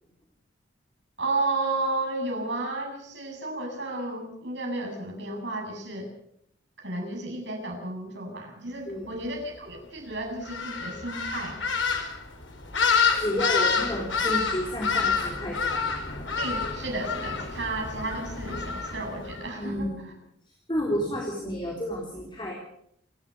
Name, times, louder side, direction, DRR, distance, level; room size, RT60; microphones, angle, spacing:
voice 1, 1.2-6.1 6.8-11.6 16.4-19.9, right 2 dB, 65° right, 1 dB, 7.7 m, -32 dB
sound 1, 10.4-19.5, left 5 dB, 80° left, 4.7 m, -28 dB
voice 2, 13.1-15.8 19.6-20.0 20.7-22.5, equal, 25° left, -1 dB, 3.8 m, -30 dB
29.0 x 13.5 x 6.7 m, 0.71 s
head